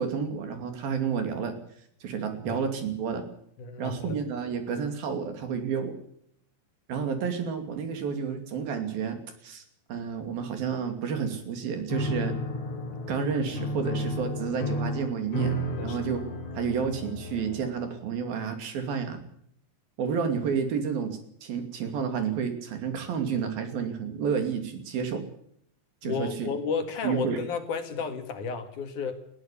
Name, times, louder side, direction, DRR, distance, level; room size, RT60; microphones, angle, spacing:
voice 1, 0.0-1.5 2.0-3.2 3.8-6.0 6.9-9.6 9.9-12.4 13.1-16.2 16.6-19.2 20.0-25.2 26.0-26.5 27.0-27.4, right 6 dB, 75° right, 7 dB, 4.5 m, -30 dB
voice 2, 3.6-4.2 15.7-16.0 26.0-29.2, left 5 dB, 60° left, 7 dB, 3.2 m, -32 dB
Piano, 11.9-17.8, equal, 45° left, 4.2 m, -32 dB
21.0 x 15.0 x 8.5 m, 0.68 s
omnidirectional pair, 4.2 m